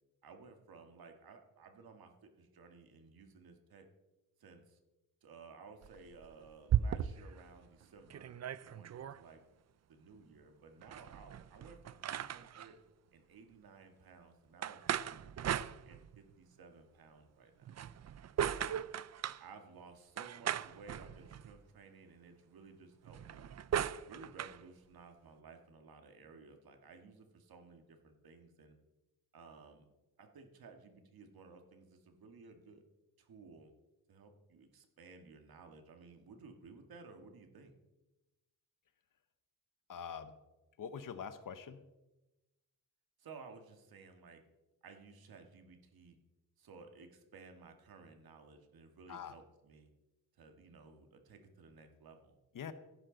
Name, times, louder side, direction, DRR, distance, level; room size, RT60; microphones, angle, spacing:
voice 1, 0.2-3.9 4.4-4.8 5.2-9.4 9.9-12.8 13.1-15.5 15.8-17.8 18.4-18.8 19.4-23.5 24.0-28.8 29.3-29.9 30.2-32.8 33.2-33.7 34.1-37.7 43.2-44.4 44.8-46.2 46.6-49.9 50.3-52.4, right 4 dB, 85° right, 5 dB, 1.8 m, -56 dB
sound 1, 5.8-7.4 7.8-7.9 8.1-9.2 10.8-12.7 14.6-16.3 17.6-19.4 20.2-21.6 23.0-24.6, right 10 dB, 50° right, 0.4 m, -38 dB
voice 2, 39.9-40.4 40.8-41.8 49.1-49.4 52.5-52.7, left 7 dB, 65° left, 11 dB, 0.9 m, -44 dB
16.0 x 11.0 x 3.9 m, 1.0 s
wide cardioid pair, 125°, 35 cm